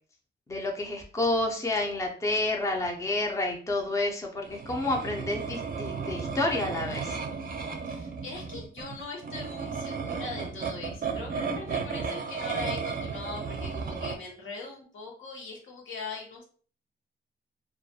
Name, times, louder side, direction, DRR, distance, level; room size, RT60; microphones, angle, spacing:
voice 1, 0.5-7.2, left 2 dB, 15° left, 1 dB, 0.5 m, -29 dB
sound 1, 4.4-14.2, right 5 dB, 45° right, 0.5 m, -34 dB
voice 2, 7.9-16.4, left 3 dB, 80° left, -2 dB, 0.9 m, -41 dB
2.3 x 2.2 x 2.6 m, 0.43 s
cardioid pair, 95°, 20 cm